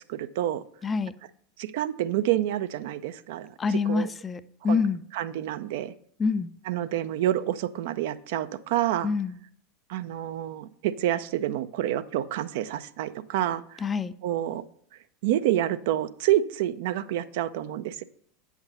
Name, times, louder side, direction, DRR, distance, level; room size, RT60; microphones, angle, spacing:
voice 1, 0.1-0.6 1.6-3.5 3.9-4.1 4.7-4.8 5.1-5.9 6.7-9.1 9.9-13.8 14.2-14.6 15.2-18.0, right 12 dB, 60° right, 13 dB, 0.4 m, -28 dB
voice 2, 0.8-1.1 3.6-5.0 6.2-6.5 9.0-9.4 13.8-14.1, left 4 dB, 20° left, 14 dB, 0.4 m, -26 dB
8.6 x 5.9 x 4.3 m, 0.64 s
figure-of-eight pair, 85°, 0 cm